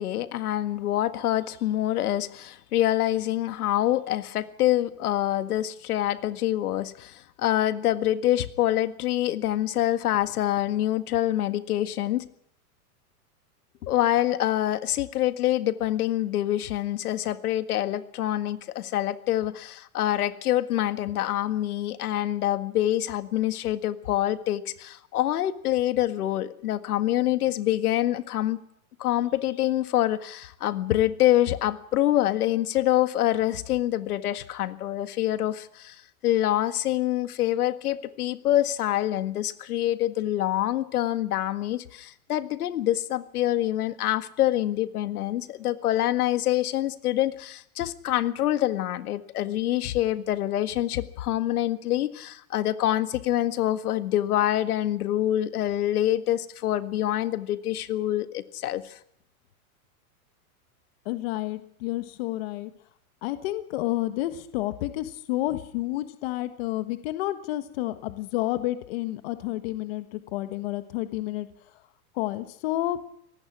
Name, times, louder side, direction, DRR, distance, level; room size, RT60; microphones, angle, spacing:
voice 1, 0.0-12.2 13.8-28.6 29.0-59.0, left 13 dB, 75° left, 11 dB, 1.8 m, -26 dB
voice 2, 61.0-62.7 63.2-71.5 72.1-73.0, left 16 dB, 40° left, 10 dB, 1.5 m, -30 dB
24.5 x 19.0 x 6.1 m, 0.72 s
supercardioid pair, 170°, 45 cm